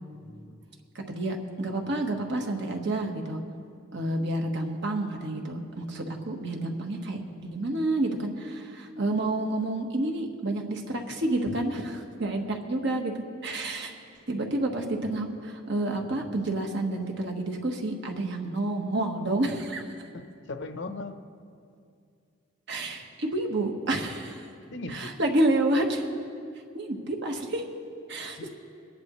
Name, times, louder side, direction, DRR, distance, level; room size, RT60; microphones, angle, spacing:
voice 1, 0.3-0.6 20.1-21.2 24.7-25.1 28.4-28.5, left 2 dB, 65° left, 8 dB, 0.8 m, -38 dB
voice 2, 0.9-3.4 3.9-13.1 13.4-13.9 14.3-19.9 22.7-24.5 24.9-26.1 26.7-27.6 28.1-28.5, right 2 dB, 65° right, 2 dB, 1.3 m, -29 dB
23.5 x 10.5 x 3.1 m, 2.4 s
head